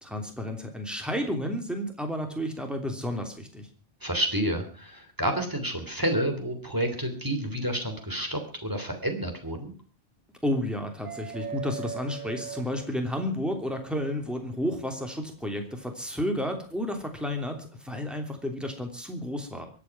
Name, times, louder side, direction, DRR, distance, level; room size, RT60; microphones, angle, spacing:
voice 1, 0.0-3.7 10.4-19.7, left 1 dB, ahead, 4 dB, 3.0 m, -31 dB
voice 2, 4.0-9.7, right 1 dB, 20° right, 5 dB, 3.2 m, -29 dB
sound 1, 11.0-13.4 15.1-15.2 17.0-17.2, right 7 dB, 40° right, 1.7 m, -38 dB
23.5 x 8.6 x 6.0 m, 0.40 s
omnidirectional pair, 1.1 m